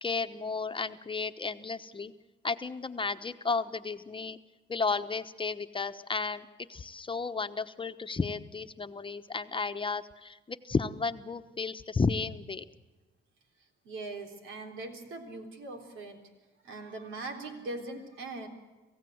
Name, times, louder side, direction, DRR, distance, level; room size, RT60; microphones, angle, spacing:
voice 1, 0.0-2.1 2.4-4.4 4.7-12.6, left 4 dB, 25° left, 9 dB, 1.0 m, -33 dB
voice 2, 13.8-16.3 16.6-18.5, right 2 dB, 85° right, 3 dB, 3.7 m, -41 dB
27.0 x 16.0 x 7.9 m, 1.2 s
cardioid pair, 90°, 20 cm